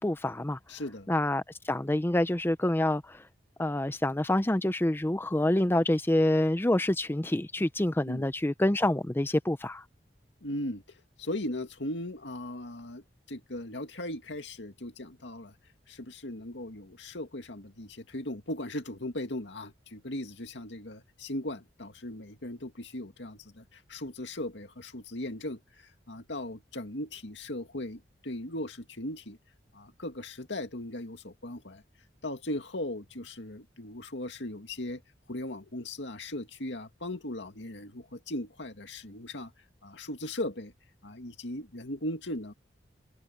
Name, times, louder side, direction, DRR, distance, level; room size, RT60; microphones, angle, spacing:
voice 1, 0.0-0.6 1.1-3.2 3.6-9.8, left 1 dB, 15° left, 0.6 m, -27 dB
voice 2, 0.7-1.1 8.1-8.3 10.4-10.8 11.2-13.0 13.3-15.6 15.9-29.4 29.7-31.8 32.2-35.0 35.3-39.5 39.8-40.7 41.0-42.5, left 1 dB, 85° left, 2.2 m, -38 dB
head